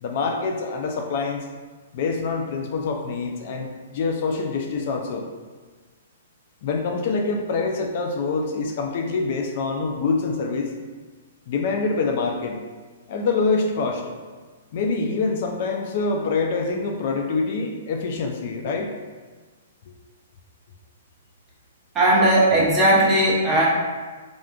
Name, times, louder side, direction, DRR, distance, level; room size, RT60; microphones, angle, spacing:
voice 1, 0.0-1.4 1.9-5.3 6.6-10.7 11.5-12.6 13.1-14.0 14.7-18.9, left 4 dB, 50° left, 3 dB, 0.3 m, -25 dB
voice 2, 21.9-23.7, right 1 dB, 20° right, -5 dB, 0.7 m, -17 dB
3.5 x 2.4 x 2.3 m, 1.4 s
hypercardioid pair, 150°, 0 cm